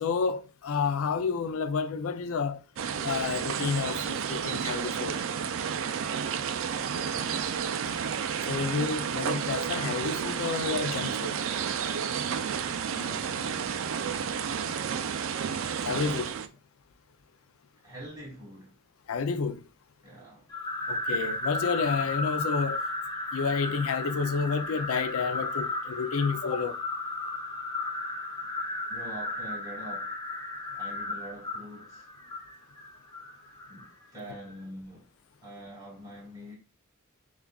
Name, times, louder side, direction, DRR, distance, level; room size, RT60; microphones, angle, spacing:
voice 1, 0.0-2.6 3.0-5.2 8.5-11.4 15.9-16.3 19.1-19.6 20.9-22.8 23.3-26.8, left 5 dB, 80° left, 0.4 m, -30 dB
pajaros lluvia, 2.8-16.5, right 7 dB, 65° right, 0.4 m, -31 dB
voice 2, 7.1-7.6 12.9-14.0 17.8-18.7 20.0-20.5 28.9-30.1 30.8-32.0 33.7-35.0 35.4-36.6, equal, 20° right, 2.2 m, -44 dB
sound 1, 20.5-33.9, left 2 dB, 20° left, 0.9 m, -34 dB
6.9 x 2.4 x 2.3 m
head